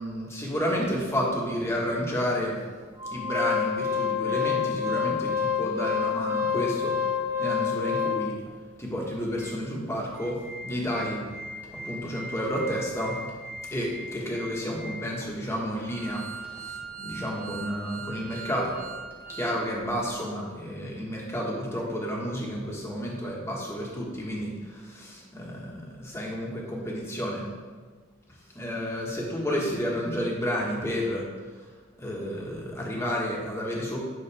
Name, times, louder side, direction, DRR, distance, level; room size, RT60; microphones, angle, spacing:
voice 1, 0.0-2.6 3.1-6.9 7.4-8.3 8.8-10.4 10.6-11.2 11.8-13.2 13.7-16.2 16.6-18.8 19.3-27.5 28.5-31.2 32.0-34.0, equal, 15° left, -3 dB, 1.5 m, -31 dB
Organ, 3.0-8.5 9.0-9.1 9.4-9.5 10.0-19.6 19.9-20.0, left 5 dB, 10° right, 0.9 m, -31 dB
9.8 x 6.1 x 3.5 m, 1.5 s
head